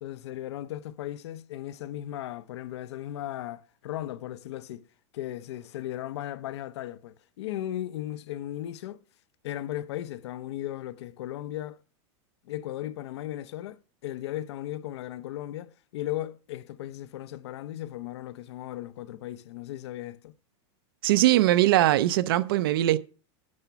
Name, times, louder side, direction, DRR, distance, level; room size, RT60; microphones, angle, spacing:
voice 1, 0.0-4.9 5.1-9.0 9.4-11.8 12.4-20.3, left 13 dB, 60° left, 0.7 m, -36 dB
voice 2, 21.0-23.0, right 15 dB, 50° right, 0.5 m, -21 dB
9.7 x 7.0 x 5.7 m
supercardioid pair, 180°, 16 cm